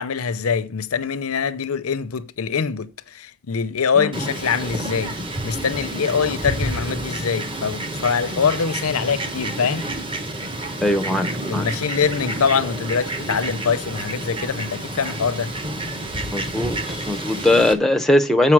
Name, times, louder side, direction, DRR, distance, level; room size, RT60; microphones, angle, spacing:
voice 1, 0.0-5.1 5.4-9.9 11.5-15.5, left 6 dB, 85° left, 0.6 m, -24 dB
voice 2, 4.0-4.3 10.8-11.7 16.3-16.8 17.1-18.5, left 1 dB, ahead, 0.6 m, -19 dB
Fowl, 4.1-17.7, right 1 dB, 25° right, 1.0 m, -29 dB
7.4 x 5.2 x 6.1 m
head